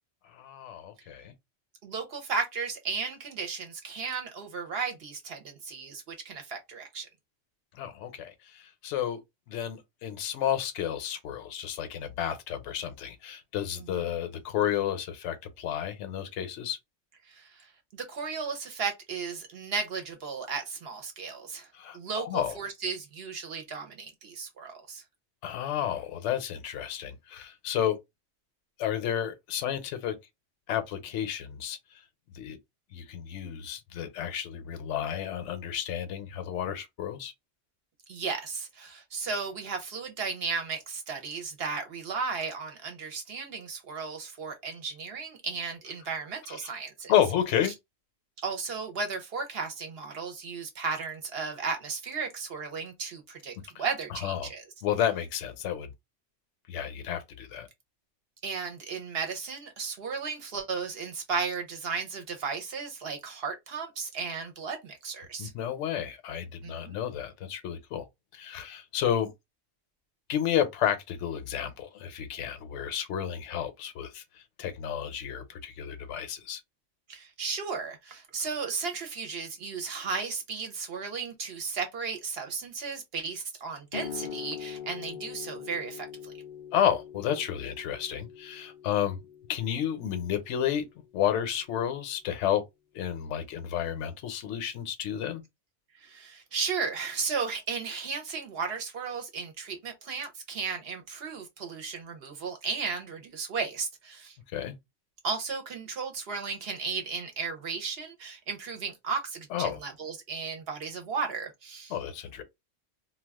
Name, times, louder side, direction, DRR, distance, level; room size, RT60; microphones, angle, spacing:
voice 1, 0.3-1.3 7.7-9.2 9.5-16.8 21.7-22.5 25.4-28.0 28.8-30.1 30.7-31.8 32.3-32.6 32.9-37.3 46.6-46.7 47.1-47.7 53.7-53.8 54.1-54.5 54.8-55.9 56.7-57.7 65.4-68.0 68.3-69.3 70.3-74.2 74.6-76.6 86.7-89.2 89.5-90.9 91.1-92.6 92.9-95.4 104.5-104.8 109.5-109.8 111.9-112.4, left 10 dB, 75° left, 0.9 m, -31 dB
voice 2, 1.8-7.1 13.8-14.0 17.3-21.7 21.9-25.0 38.1-47.1 48.4-54.6 58.4-65.5 66.6-67.0 77.1-86.3 96.0-104.4 105.2-112.0, right 5 dB, 60° right, 0.8 m, -35 dB
sound 1, 83.9-91.1, left 8 dB, 60° left, 0.5 m, -43 dB
2.3 x 2.2 x 3.4 m
omnidirectional pair, 1.3 m